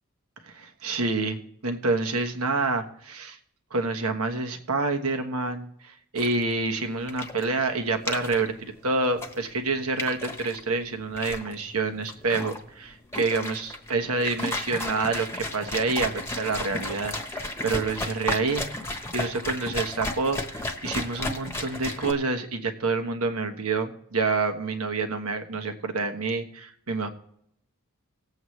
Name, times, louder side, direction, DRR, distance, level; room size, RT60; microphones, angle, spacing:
voice 1, 0.4-3.4 3.7-27.1, right 3 dB, 80° right, 5 dB, 1.3 m, -28 dB
sound 1, 6.2-22.1, left 1 dB, 10° left, 1.1 m, -34 dB
19.0 x 7.9 x 3.2 m, 0.71 s
head